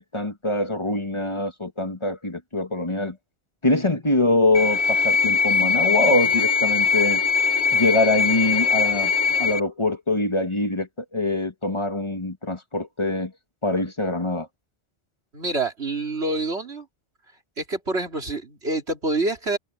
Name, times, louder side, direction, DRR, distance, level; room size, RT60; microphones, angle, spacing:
voice 1, 0.0-3.2 3.6-7.2 7.7-9.1 9.4-13.3 13.6-14.5, left 2 dB, 25° left, 1.7 m, -24 dB
sound 1, 4.5-9.6, left 5 dB, 80° left, 4.1 m, -21 dB
voice 2, 15.3-16.9 17.6-19.6, right 2 dB, 80° right, 3.7 m, -26 dB
omnidirectional pair, 1.1 m